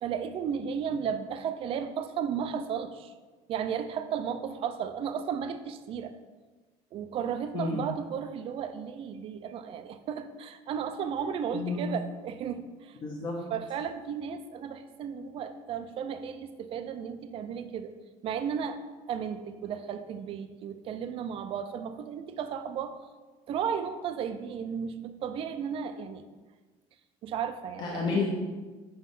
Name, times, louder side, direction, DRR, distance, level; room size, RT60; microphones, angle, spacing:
voice 1, 0.0-3.1 3.5-6.2 6.9-13.0 13.5-17.9 18.2-18.8 19.1-23.0 23.5-26.2 27.2-28.2, right 7 dB, 45° right, 10 dB, 0.5 m, -34 dB
voice 2, 11.5-11.8 13.0-13.4 27.8-28.3, left 4 dB, 30° left, -2 dB, 0.8 m, -30 dB
9.3 x 3.2 x 5.4 m, 1.3 s
cardioid pair, 170°, 14 cm